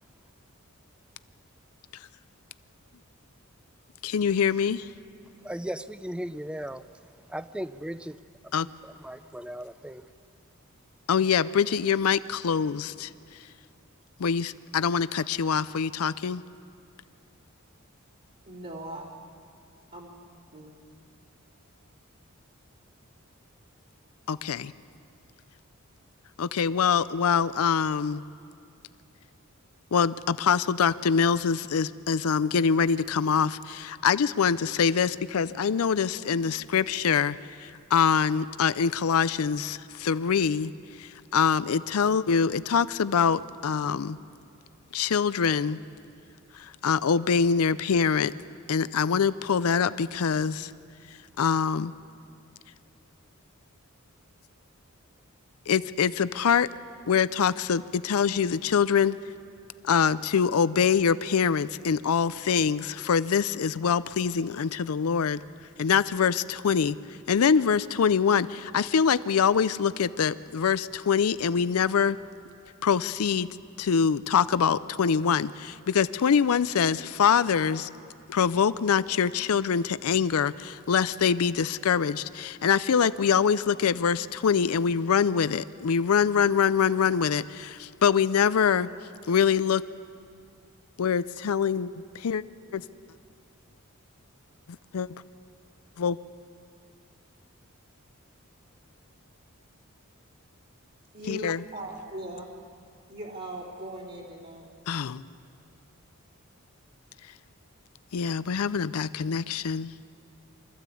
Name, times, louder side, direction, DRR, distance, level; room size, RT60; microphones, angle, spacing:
voice 1, 4.0-4.9 8.5-8.7 11.1-13.1 14.2-16.4 24.3-24.7 26.4-28.2 29.9-40.7 41.0-44.2 44.9-45.8 46.5-48.3 48.7-50.7 51.4-51.9 55.7-56.7 57.1-59.2 59.8-65.4 65.8-67.0 67.3-72.2 72.8-73.5 73.8-77.9 78.3-88.9 89.3-89.8 91.0-92.4 92.7-92.8 94.9-95.1 96.0-96.2 101.3-101.6 104.9-105.3 108.1-109.9, left 6 dB, 90° left, 15 dB, 0.5 m, -24 dB
voice 2, 5.4-6.8 7.3-8.2 8.8-10.0, equal, 5° right, 13 dB, 0.5 m, -36 dB
voice 3, 18.5-19.1 19.9-20.2 20.5-21.0 101.1-102.5 103.1-104.6, right 1 dB, 50° right, -6 dB, 3.1 m, -39 dB
24.5 x 14.5 x 8.4 m, 2.4 s
head